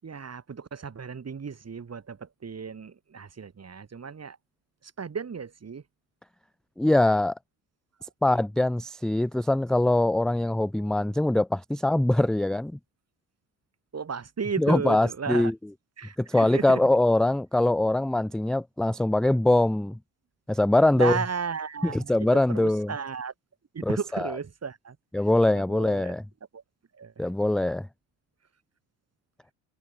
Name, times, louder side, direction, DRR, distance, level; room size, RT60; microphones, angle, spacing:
voice 1, 0.0-4.4 4.8-5.8 8.0-8.1 13.9-15.5 16.0-16.8 20.9-23.3 23.7-26.1 26.5-26.6 26.9-27.2, right 6 dB, 30° right, 7.0 m, -35 dB
voice 2, 6.8-7.3 8.2-12.8 14.6-15.5 16.3-20.0 20.5-21.2 21.9-22.9 23.9-24.3 25.1-26.2 27.2-27.9, left 1 dB, ahead, 0.3 m, -23 dB
hypercardioid pair, 75°, 48 cm